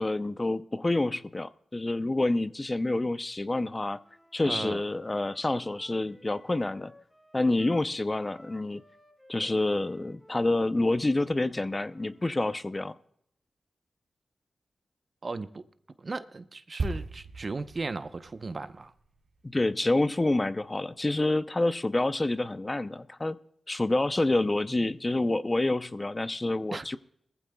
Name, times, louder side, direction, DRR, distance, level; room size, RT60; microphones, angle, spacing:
voice 1, 0.0-4.0 4.3-6.9 7.3-8.8 9.3-13.0 19.4-23.4 23.7-27.0, left 2 dB, 30° left, 0.6 m, -28 dB
Wind instrument woodwind instrument, 4.0-12.4, left 1 dB, 5° left, 3.8 m, -58 dB
voice 2, 4.4-4.8 15.2-15.6 16.0-18.9 26.7-26.8, right 3 dB, 50° right, 0.8 m, -36 dB
sound 1, 16.8-20.4 20.7-20.9, right 3 dB, 65° right, 2.1 m, -38 dB
20.0 x 15.0 x 2.3 m
cardioid pair, 50°, 0 cm